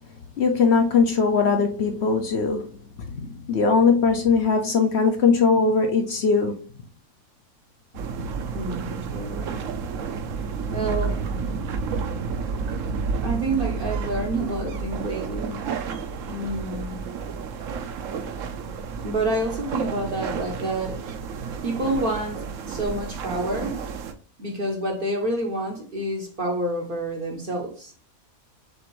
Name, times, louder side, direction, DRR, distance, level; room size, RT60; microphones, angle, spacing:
voice 1, 0.4-2.7 3.0-6.7, left 5 dB, 60° left, 0.8 m, -20 dB
sound 1, 7.9-24.1, right 5 dB, 70° right, 1.0 m, -31 dB
voice 2, 8.5-9.6 10.7-11.4 13.2-15.6 15.9-16.0 16.3-17.0 19.0-21.0 21.6-23.8 24.4-27.9, right 1 dB, 45° right, 0.8 m, -28 dB
6.6 x 2.5 x 3.0 m
omnidirectional pair, 1.5 m